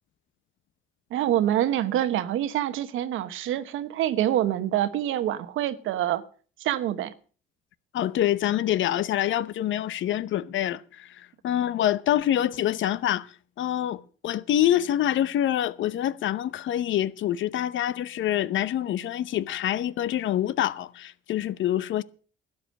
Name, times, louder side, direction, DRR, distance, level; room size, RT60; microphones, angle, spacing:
voice 1, 1.1-6.2 6.6-7.1, right 12 dB, 85° right, 1.1 m, -26 dB
voice 2, 7.9-22.0, left 12 dB, 75° left, 0.8 m, -26 dB
12.5 x 9.6 x 6.4 m
cardioid pair, 90°, 20 cm